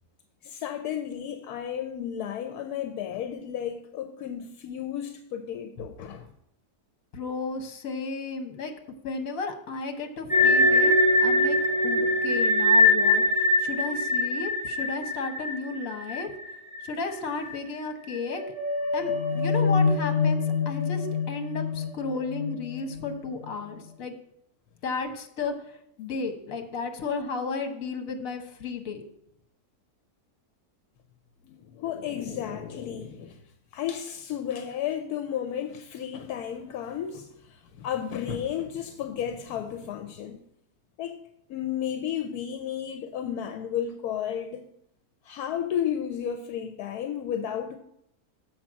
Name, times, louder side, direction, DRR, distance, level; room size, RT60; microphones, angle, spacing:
voice 1, 0.4-6.3 31.4-33.4 33.7-40.4 41.0-41.2 41.5-44.6 45.2-47.8, left 9 dB, 80° left, 1.1 m, -33 dB
voice 2, 7.1-8.7 9.0-10.9 11.2-11.6 11.8-16.3 16.8-18.4 18.9-20.4 20.7-24.2 24.8-29.0, left 4 dB, 65° left, 1.4 m, -33 dB
sound 1, 10.3-17.1 17.4-17.5 18.1-23.4, left 2 dB, 5° left, 2.6 m, -24 dB
7.3 x 5.0 x 7.2 m
omnidirectional pair, 1.6 m